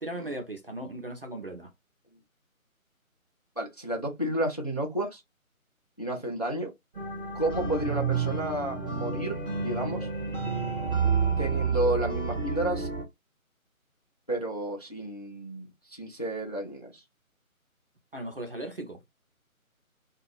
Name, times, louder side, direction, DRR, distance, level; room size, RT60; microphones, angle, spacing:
voice 1, 0.0-1.7 18.1-19.0, right 1 dB, 45° right, 0.5 m, -37 dB
voice 2, 3.6-5.2 6.0-6.7 7.3-10.1 11.4-12.9 14.3-17.0, right 1 dB, 30° left, 0.5 m, -31 dB
sound 1, 6.9-13.0, right 5 dB, 5° right, 0.8 m, -29 dB
2.4 x 2.2 x 3.2 m
figure-of-eight pair, 150°, 42 cm